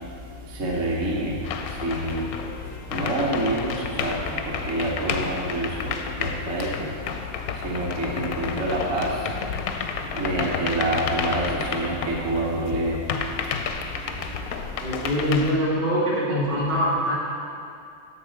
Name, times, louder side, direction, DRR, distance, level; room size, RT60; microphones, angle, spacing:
voice 1, 0.5-1.4 1.8-2.3 2.9-6.9 7.6-9.2 10.1-13.0 14.3-14.4, right 1 dB, 45° right, -3 dB, 1.2 m, -27 dB
sound 1, 0.9-14.6, left 6 dB, 85° left, 1.3 m, -40 dB
sound 2, 1.4-12.7 13.1-15.6, left 6 dB, 70° left, 0.9 m, -31 dB
voice 2, 14.8-17.1, equal, 70° right, -9 dB, 3.3 m, -23 dB
10.5 x 4.0 x 7.0 m, 2.5 s
omnidirectional pair, 2.0 m